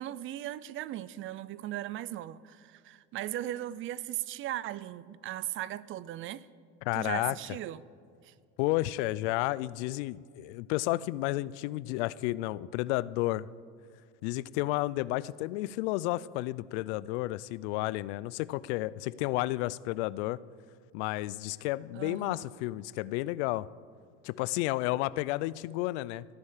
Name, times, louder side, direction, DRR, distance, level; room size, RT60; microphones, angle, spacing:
voice 1, 0.0-6.5 6.9-7.8 8.2-8.3 21.9-22.4, right 13 dB, 40° right, 0.4 m, -38 dB
voice 2, 6.8-7.4 8.6-13.5 14.2-20.4 20.9-23.7 24.2-26.3, left 18 dB, 90° left, 0.5 m, -31 dB
14.5 x 6.6 x 9.8 m
cardioid pair, 135°, 33 cm